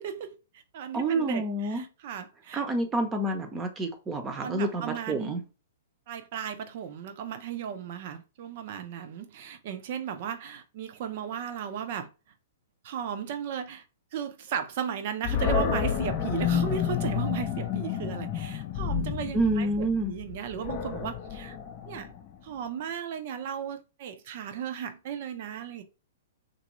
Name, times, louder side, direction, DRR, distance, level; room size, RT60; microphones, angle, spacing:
voice 1, 0.0-2.6 4.3-5.4 6.1-12.1 12.8-13.8 14.1-21.6 21.8-22.1 22.4-25.8, right 8 dB, 55° right, 0.6 m, -35 dB
voice 2, 0.9-1.8 2.5-5.4 19.3-20.1, right 2 dB, 20° right, 0.7 m, -28 dB
Animal, 15.2-22.4, left 8 dB, 35° left, 0.5 m, -30 dB
2.9 x 2.6 x 3.0 m
hypercardioid pair, 130°, 0 cm